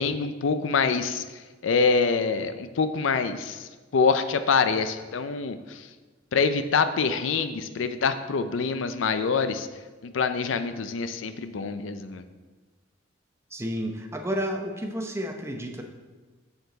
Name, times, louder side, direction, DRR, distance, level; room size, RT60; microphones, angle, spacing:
voice 1, 0.0-5.9 6.3-9.7 10.0-12.2, left 5 dB, 80° left, 10 dB, 0.5 m, -25 dB
voice 2, 13.5-15.8, equal, 15° right, 3 dB, 0.7 m, -31 dB
6.7 x 6.6 x 4.0 m, 1.3 s
head